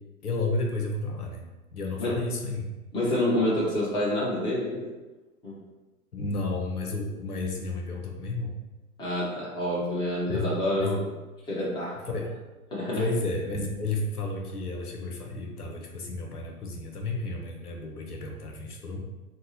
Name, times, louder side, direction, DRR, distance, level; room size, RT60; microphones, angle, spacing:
voice 1, 0.2-1.4 1.7-2.6 6.1-8.6 10.3-10.5 10.8-10.9 12.1-12.3 13.0-19.0, left 2 dB, 85° left, 1 dB, 0.9 m, -32 dB
voice 2, 2.9-4.9 5.4-5.6 9.0-11.1 11.5-12.1 12.7-13.1, left 1 dB, 10° left, -7 dB, 1.0 m, -28 dB
3.7 x 2.2 x 4.1 m, 1.1 s
figure-of-eight pair, 115°, 44 cm